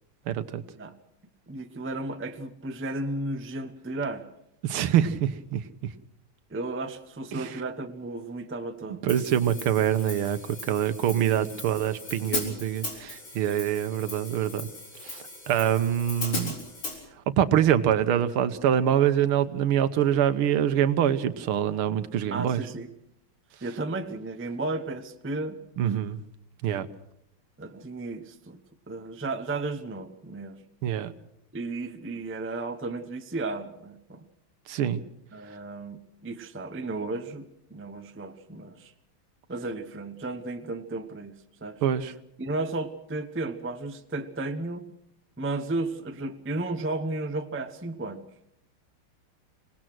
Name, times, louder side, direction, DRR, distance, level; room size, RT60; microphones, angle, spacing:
voice 1, 0.3-0.6 4.6-5.6 7.3-7.5 9.0-14.7 15.0-16.6 17.4-22.6 25.8-26.2 26.6-26.9 30.8-31.1 34.7-35.0 41.8-42.1, right 10 dB, 90° right, 11 dB, 1.9 m, -25 dB
voice 2, 1.5-4.3 6.5-9.1 11.3-11.6 22.3-22.9 23.6-25.6 27.6-28.6 28.9-30.6 31.5-34.2 35.3-38.9 39.5-41.8 42.4-44.9 45.4-48.2, right 2 dB, 15° right, 8 dB, 0.4 m, -34 dB
Hi-hat, 9.1-17.0, left 3 dB, 75° left, 5.2 m, -38 dB
25.5 x 18.5 x 6.2 m, 0.76 s
omnidirectional pair, 2.3 m